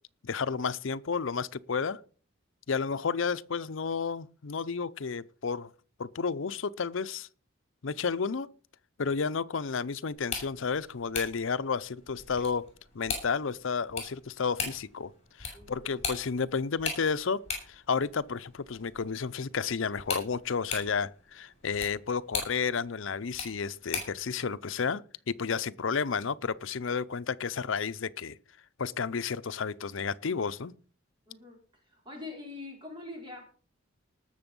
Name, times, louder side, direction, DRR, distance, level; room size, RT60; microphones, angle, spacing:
voice 1, 0.2-2.0 2.7-5.7 6.0-7.3 7.8-8.5 9.0-12.7 12.9-15.1 15.4-17.4 17.7-28.4 28.8-30.7, left 5 dB, 70° left, 0.6 m, -31 dB
sound 1, 10.1-24.3, left 4 dB, 30° left, 6.4 m, -40 dB
voice 2, 15.5-16.1 31.3-31.6 31.9-33.4, left 3 dB, 25° right, 4.5 m, -44 dB
19.5 x 6.9 x 5.3 m
head